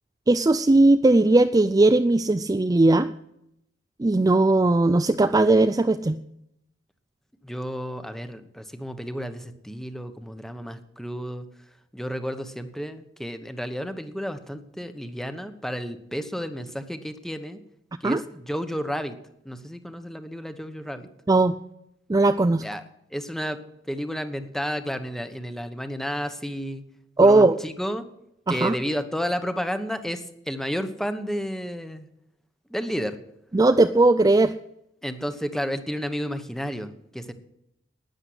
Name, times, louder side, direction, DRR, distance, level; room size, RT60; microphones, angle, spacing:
voice 1, 0.3-3.1 4.0-6.2 18.0-18.2 21.3-21.5 22.1-22.6 27.2-27.6 28.5-28.8 33.5-34.5, right 2 dB, 20° right, 9 dB, 0.4 m, -18 dB
voice 2, 7.4-11.5 11.9-17.6 18.0-19.2 19.4-21.1 22.6-22.8 23.1-23.6 23.9-26.8 27.2-28.0 28.5-32.1 32.7-33.2 35.0-37.3, equal, ahead, 9 dB, 1.0 m, -31 dB
12.0 x 9.9 x 7.9 m, 0.80 s
head